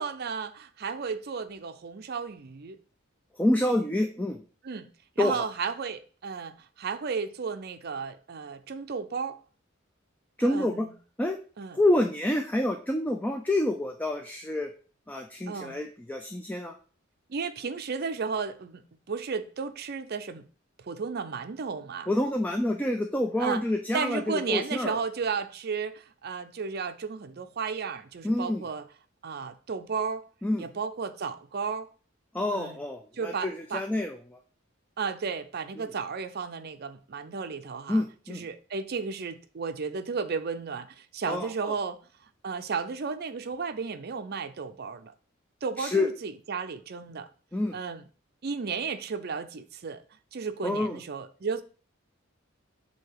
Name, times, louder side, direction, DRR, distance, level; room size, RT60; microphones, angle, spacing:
voice 1, 0.0-2.8 4.6-4.9 5.2-9.4 10.5-10.9 11.6-11.8 15.5-15.8 17.3-18.8 19.1-20.4 20.8-22.1 23.4-23.6 23.9-28.9 29.2-30.3 30.6-31.9 32.5-32.8 33.1-33.8 35.0-38.0 38.3-42.0 42.4-45.1 45.6-47.3 47.7-48.0 48.4-50.0 50.3-51.6, right 5 dB, 50° right, 0.5 m, -33 dB
voice 2, 3.4-4.4 5.2-5.5 10.4-10.9 11.2-11.4 11.7-14.7 15.1-16.7 22.1-25.0 28.2-28.6 30.4-30.6 32.3-34.4 35.8-35.9 37.9-38.4 41.3-41.7 45.8-46.1 47.5-47.7 50.6-51.0, left 1 dB, 10° left, 0.4 m, -28 dB
7.5 x 2.8 x 4.7 m
head